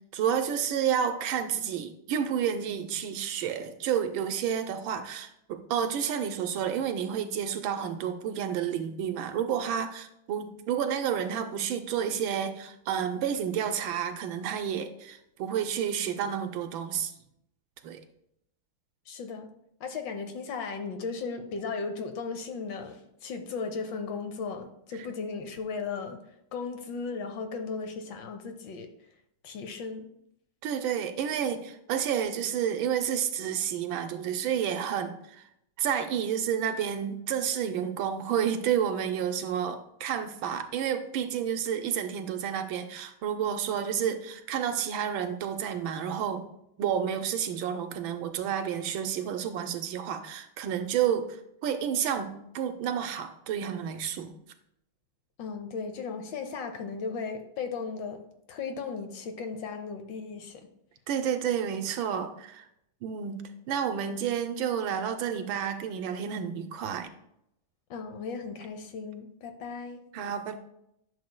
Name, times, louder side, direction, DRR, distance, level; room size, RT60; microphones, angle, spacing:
voice 1, 0.1-17.1 17.8-18.0 30.6-35.4 35.8-46.5 46.8-54.3 61.1-62.7 63.0-67.1 70.1-70.6, right 8 dB, 75° right, 7 dB, 1.3 m, -30 dB
voice 2, 19.1-19.5 19.8-26.2 26.5-28.9 29.4-30.0 55.4-58.2 58.5-60.7 67.9-70.0, left 5 dB, 70° left, 6 dB, 1.3 m, -36 dB
10.5 x 6.6 x 2.2 m, 0.77 s
omnidirectional pair, 2.3 m